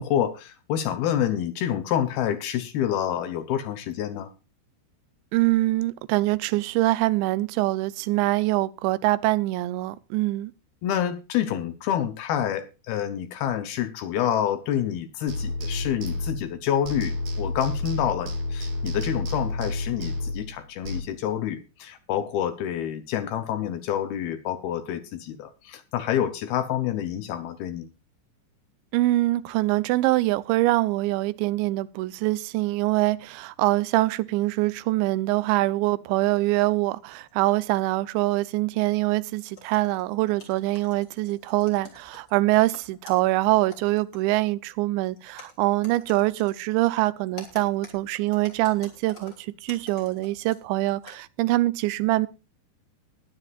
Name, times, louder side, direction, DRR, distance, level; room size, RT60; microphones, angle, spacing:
voice 1, 0.0-4.3 10.8-27.9, left 10 dB, 75° left, 2.4 m, -28 dB
voice 2, 5.3-10.5 28.9-52.3, right 18 dB, 80° right, 3.0 m, -24 dB
sound 1, 15.3-16.6 16.8-21.0, left 2 dB, 50° right, 2.5 m, -30 dB
sound 2, 36.7-36.8 37.1-37.3 37.7-37.8 38.9-43.3 43.6-44.5 45.1-46.6 47.3-50.6 50.9-51.2, left 3 dB, 25° left, 3.3 m, -49 dB
21.0 x 9.5 x 2.5 m
omnidirectional pair, 5.2 m